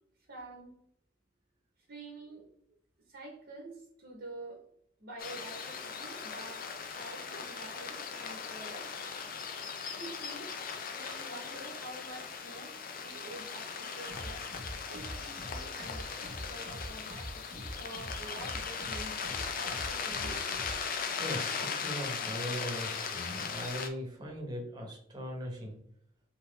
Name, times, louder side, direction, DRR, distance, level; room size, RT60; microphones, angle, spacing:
voice 1, 0.3-0.7 1.9-2.5 3.1-4.6 5.0-8.9 10.0-20.5, right 2 dB, 60° right, -1 dB, 1.0 m, -48 dB
sound 1, 5.2-23.9, left 6 dB, 50° left, 0.5 m, -38 dB
sound 2, 14.1-20.8, equal, 10° left, 1.2 m, -44 dB
voice 2, 21.2-25.8, equal, 20° right, 0 dB, 1.1 m, -39 dB
3.7 x 2.9 x 3.3 m, 0.67 s
head